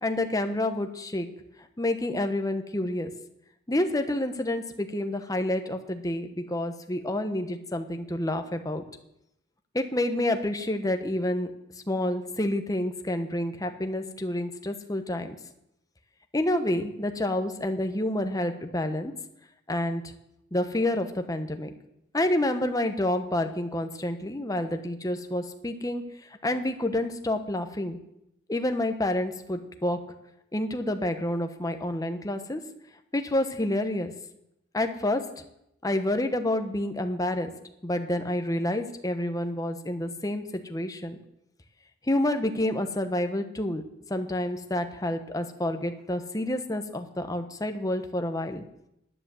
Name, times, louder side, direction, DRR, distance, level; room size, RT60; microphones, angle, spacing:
voice 1, 0.0-1.3 1.8-3.1 3.7-8.8 9.7-11.5 11.9-15.4 16.3-19.1 19.7-20.1 20.5-21.7 22.1-26.0 26.4-28.0 28.5-30.0 30.5-32.6 33.1-34.1 34.7-35.4 35.8-37.5 37.8-41.2 42.1-43.8 44.1-48.6, left 1 dB, 20° left, 7 dB, 1.0 m, -28 dB
11.0 x 9.7 x 7.7 m, 0.81 s
head